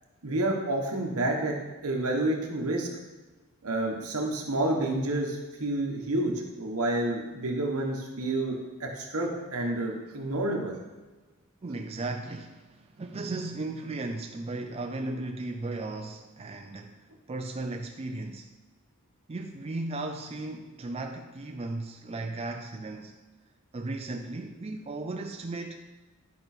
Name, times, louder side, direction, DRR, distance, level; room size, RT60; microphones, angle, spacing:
voice 1, 0.2-1.6 1.8-2.9 3.6-10.8, right 1 dB, 70° right, 0 dB, 1.5 m, -29 dB
voice 2, 11.6-17.0 17.3-18.5 19.3-23.2 23.7-25.8, right 2 dB, 30° right, 3 dB, 0.5 m, -36 dB
11.0 x 5.3 x 4.5 m, 1.2 s
head